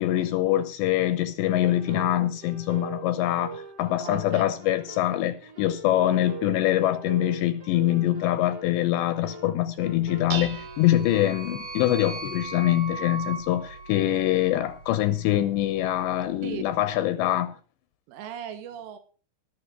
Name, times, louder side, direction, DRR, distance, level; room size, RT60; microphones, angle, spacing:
voice 1, 0.0-17.5, left 13 dB, 80° left, 2.9 m, -24 dB
sound 1, 1.6-10.3, right 3 dB, 45° right, 1.3 m, -42 dB
voice 2, 4.0-4.4 16.4-16.6 18.1-19.0, right 9 dB, 85° right, 3.9 m, -37 dB
Dishes pots and pans, 9.8-16.9, right 6 dB, 65° right, 2.0 m, -43 dB
sound 2, 10.4-14.8, right 3 dB, 30° right, 2.7 m, -39 dB
17.5 x 6.7 x 6.4 m
omnidirectional pair, 5.4 m